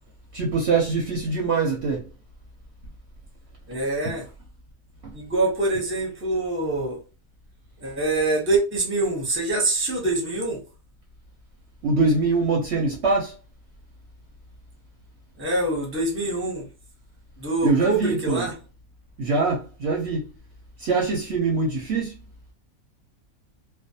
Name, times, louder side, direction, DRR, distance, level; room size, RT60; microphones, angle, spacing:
voice 1, 0.3-2.0 4.1-4.2 5.0-5.1 11.8-13.3 17.6-18.5 19.2-20.3 20.8-22.2, right 4 dB, 60° right, 0.8 m, -23 dB
voice 2, 3.7-4.2 5.1-7.0 7.8-10.6 15.4-16.7 17.4-18.5, right 2 dB, 10° right, 0.7 m, -25 dB
2.4 x 2.1 x 2.7 m
omnidirectional pair, 1.5 m